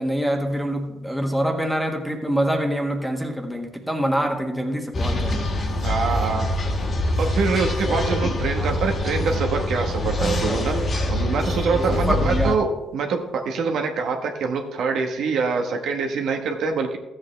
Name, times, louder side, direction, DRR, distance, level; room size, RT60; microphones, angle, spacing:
voice 1, 0.0-5.4 11.2-11.3 11.9-12.5, equal, ahead, 2 dB, 1.4 m, -25 dB
sound 1, 4.9-12.6, left 1 dB, 45° left, 1.8 m, -24 dB
voice 2, 5.8-6.4 7.2-10.8 11.1-17.0, right 4 dB, 75° right, 4 dB, 1.1 m, -25 dB
13.5 x 7.9 x 3.3 m, 1.1 s
cardioid pair, 90°, 0 cm